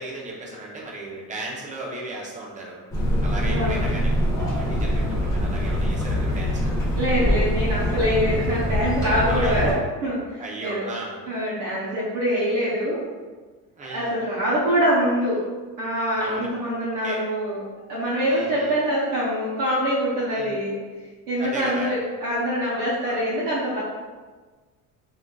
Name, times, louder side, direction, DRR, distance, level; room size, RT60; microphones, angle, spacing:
voice 1, 0.0-2.9 3.2-4.1 4.5-6.7 9.3-9.6 10.4-11.2 13.8-14.1 16.2-16.5 17.0-17.2 18.2-18.8 20.3-20.6 21.4-21.9 23.0-23.2, right 2 dB, 20° right, -3 dB, 0.6 m, -35 dB
sound 1, 2.9-9.7, equal, 10° left, 1.1 m, -23 dB
voice 2, 3.5-3.8 7.0-9.7 10.0-10.9 11.3-13.0 13.9-15.4 15.8-17.6 17.9-20.8 21.3-23.8, equal, 65° right, -8 dB, 0.8 m, -24 dB
3.7 x 2.5 x 2.2 m, 1.4 s
cardioid pair, 135°, 33 cm